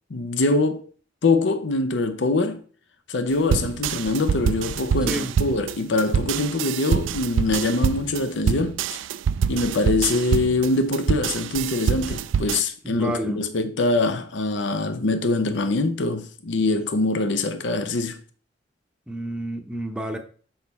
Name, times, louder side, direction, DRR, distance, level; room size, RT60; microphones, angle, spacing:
voice 1, 0.1-0.9 1.2-2.6 3.1-8.8 9.5-18.2, left 2 dB, 70° left, 0.6 m, -23 dB
sound 1, 3.5-12.6, right 7 dB, 85° right, 0.3 m, -25 dB
voice 2, 12.8-13.4 19.1-20.2, right 1 dB, 5° right, 0.8 m, -30 dB
6.6 x 5.5 x 4.1 m
head